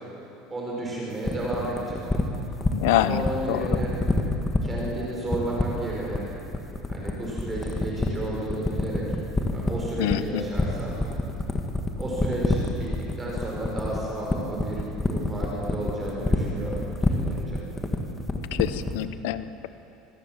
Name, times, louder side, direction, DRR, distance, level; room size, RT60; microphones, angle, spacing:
voice 1, 0.5-2.0 2.9-3.9 4.6-6.2 6.9-9.0 9.5-11.0 12.0-12.9 13.2-17.6, right 1 dB, 15° right, -4 dB, 5.1 m, -32 dB
sound 1, 1.2-19.0, left 3 dB, 10° left, 1.7 m, -26 dB
voice 2, 2.7-3.6 10.0-10.4 18.5-19.7, left 13 dB, 80° left, 13 dB, 0.8 m, -26 dB
25.5 x 21.5 x 7.4 m, 2.9 s
cardioid pair, 160°, 0 cm